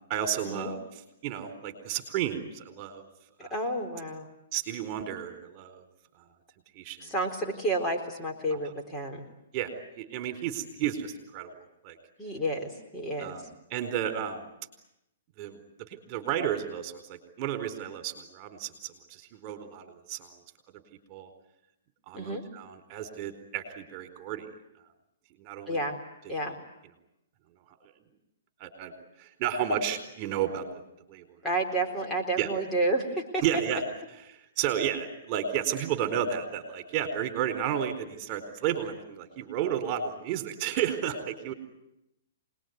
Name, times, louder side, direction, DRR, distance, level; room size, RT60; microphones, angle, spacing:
voice 1, 0.1-0.8 1.2-3.1 3.4-3.5 4.5-5.8 6.8-7.1 9.5-11.5 11.8-12.0 13.2-13.4 13.7-14.5 15.4-15.6 15.9-20.3 21.1-21.3 22.1-24.5 25.4-25.8 28.6-28.9 29.2-30.8 31.1-31.2 32.4-32.5 33.4-33.8 34.3-41.5, right 9 dB, 35° right, 7 dB, 4.4 m, -32 dB
voice 2, 3.4-4.3 7.0-9.2 12.2-13.3 22.1-22.4 25.7-26.0 26.3-26.5 31.4-33.4, right 1 dB, 15° left, 1 dB, 4.0 m, -30 dB
26.0 x 20.5 x 9.6 m, 0.87 s
hypercardioid pair, 140°, 0 cm